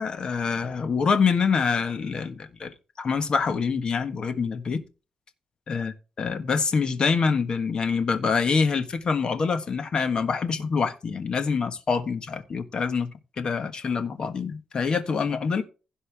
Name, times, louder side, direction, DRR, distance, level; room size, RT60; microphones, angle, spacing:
voice 1, 0.0-2.7 3.0-4.8 5.7-13.1 13.4-15.6, left 5 dB, 45° left, 1.5 m, -25 dB
16.0 x 5.5 x 3.5 m
cardioid pair, 135°, 2 cm